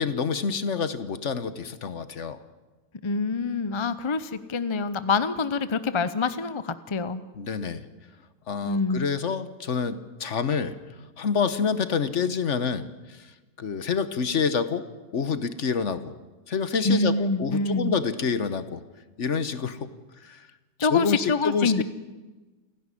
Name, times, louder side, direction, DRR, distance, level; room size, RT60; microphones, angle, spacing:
voice 1, 0.0-2.4 7.4-7.8 8.5-10.8 11.2-13.3 13.6-14.8 15.1-16.2 16.5-18.8 19.2-19.9 20.2-20.4 20.8-21.8, left 6 dB, 55° left, 12 dB, 1.3 m, -27 dB
voice 2, 3.0-7.2 8.6-9.1 16.8-17.9 20.8-21.8, left 3 dB, 30° left, 13 dB, 0.5 m, -26 dB
29.0 x 11.5 x 9.9 m, 1.2 s
omnidirectional pair, 1.6 m